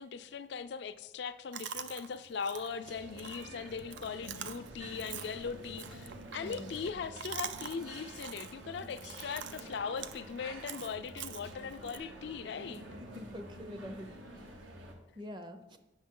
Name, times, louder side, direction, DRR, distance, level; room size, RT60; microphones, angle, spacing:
voice 1, 0.0-12.9, left 6 dB, 65° left, 0.4 m, -40 dB
Chewing mastication, 1.5-12.0, right 8 dB, 70° right, 0.4 m, -46 dB
sound 1, 2.8-14.9, right 1 dB, 85° right, 1.2 m, -49 dB
voice 2, 13.0-14.1 15.2-15.8, left 1 dB, 25° right, 0.6 m, -45 dB
8.6 x 6.1 x 3.7 m
head